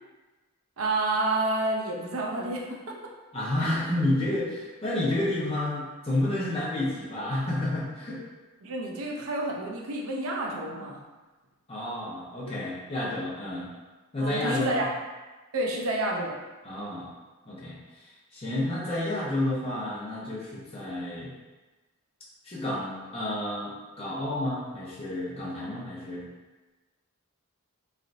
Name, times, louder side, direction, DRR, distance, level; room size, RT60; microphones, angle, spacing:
voice 1, 0.8-3.0 8.6-11.0 14.2-14.9 15.5-16.4, right 2 dB, 65° right, -1 dB, 0.6 m, -29 dB
voice 2, 3.3-8.2 11.7-13.7 14.1-14.9 16.6-17.1 17.4-21.3 22.4-26.3, left 1 dB, 25° left, -7 dB, 0.8 m, -30 dB
3.2 x 2.7 x 2.5 m, 1.2 s
head